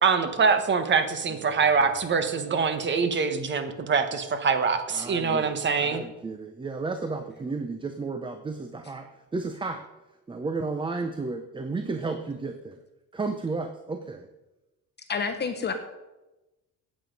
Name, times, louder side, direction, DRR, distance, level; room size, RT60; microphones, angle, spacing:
voice 1, 0.0-6.0, right 5 dB, 30° right, 9 dB, 1.3 m, -24 dB
voice 2, 1.3-1.6 4.9-9.9 10.3-12.8 13.1-14.3, right 3 dB, 15° right, 7 dB, 0.6 m, -33 dB
voice 3, 15.1-15.7, left 5 dB, 30° left, 7 dB, 1.0 m, -28 dB
15.0 x 9.0 x 5.3 m, 1.0 s
cardioid pair, 160°, 34 cm